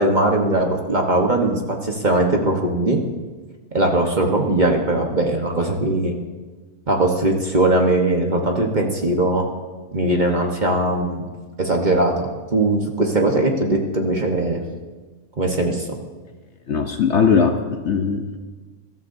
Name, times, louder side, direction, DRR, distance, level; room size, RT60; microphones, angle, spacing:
voice 1, 0.0-3.0 3.7-6.1 6.9-9.4 9.9-11.3 11.6-14.6 15.4-15.9, right 2 dB, 35° right, 1 dB, 1.1 m, -20 dB
voice 2, 16.7-18.4, left 6 dB, 55° left, 5 dB, 0.9 m, -19 dB
22.0 x 13.0 x 2.7 m, 1.3 s
omnidirectional pair, 1.7 m